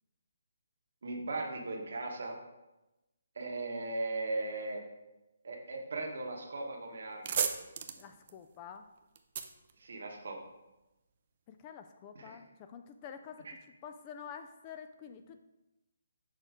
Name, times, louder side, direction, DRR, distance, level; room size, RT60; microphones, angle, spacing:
voice 1, 1.0-2.4 3.3-4.8 5.4-7.4 9.8-10.4 12.1-12.2 13.4-13.5, right 2 dB, 65° right, 1 dB, 1.3 m, -38 dB
sound 1, 6.5-6.7 7.0-10.6, right 7 dB, 40° right, 0.5 m, -37 dB
voice 2, 8.0-8.9 11.5-13.5 13.8-15.4, left 7 dB, 25° left, 8 dB, 0.3 m, -48 dB
6.5 x 3.0 x 5.0 m, 0.98 s
hypercardioid pair, 155°, 0 cm